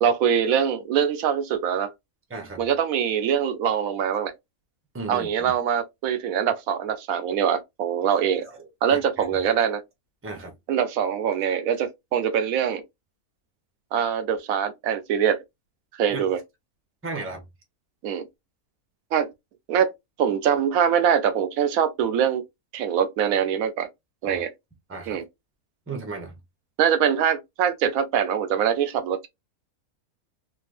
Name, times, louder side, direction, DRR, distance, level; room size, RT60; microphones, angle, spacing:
voice 1, 0.0-1.9 2.6-4.3 5.1-8.4 8.8-9.8 10.7-12.8 13.9-15.4 16.0-16.4 18.0-18.2 19.1-19.3 19.7-19.9 20.2-22.4 22.7-23.9 24.2-24.5 25.1-25.2 26.8-29.3, right 8 dB, 75° right, 1.1 m, -23 dB
voice 2, 2.3-2.6 4.9-5.5 8.6-9.2 10.2-10.5 16.1-16.2 17.0-17.4 24.2-24.4 24.9-25.2 25.9-26.4, right 3 dB, 10° right, 0.8 m, -35 dB
3.4 x 2.7 x 2.4 m
omnidirectional pair, 1.5 m